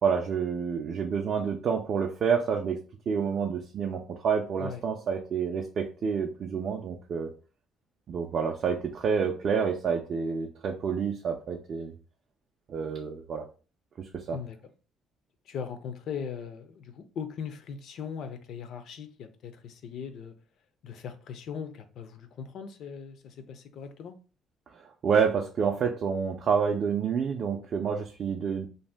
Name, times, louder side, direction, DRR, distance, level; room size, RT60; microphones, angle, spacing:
voice 1, 0.0-2.8 3.1-7.3 8.1-11.9 12.7-13.4 14.0-14.4 24.7-28.7, right 6 dB, 45° right, 0.3 m, -28 dB
voice 2, 15.5-20.3 20.8-24.2, left 7 dB, 60° left, 0.4 m, -39 dB
2.6 x 2.1 x 3.3 m
cardioid pair, 150°, 0 cm